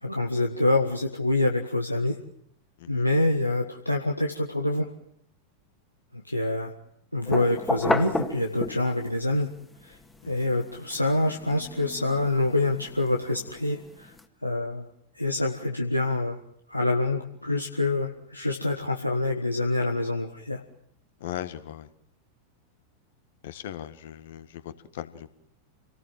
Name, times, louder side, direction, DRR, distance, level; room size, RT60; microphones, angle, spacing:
voice 1, 0.0-2.2 2.9-4.9 6.1-6.7 7.1-9.5 9.8-10.0 10.2-14.1 14.4-14.8 15.1-16.4 16.7-20.6, left 2 dB, 85° left, 2 dB, 1.6 m, -26 dB
sound 1, 7.3-9.1 9.6-14.2, left 2 dB, 10° left, 2.1 m, -32 dB
voice 2, 21.2-21.9 23.4-25.3, left 11 dB, 55° left, 11 dB, 1.6 m, -38 dB
29.0 x 19.0 x 7.6 m, 0.73 s
figure-of-eight pair, 90°, 0 cm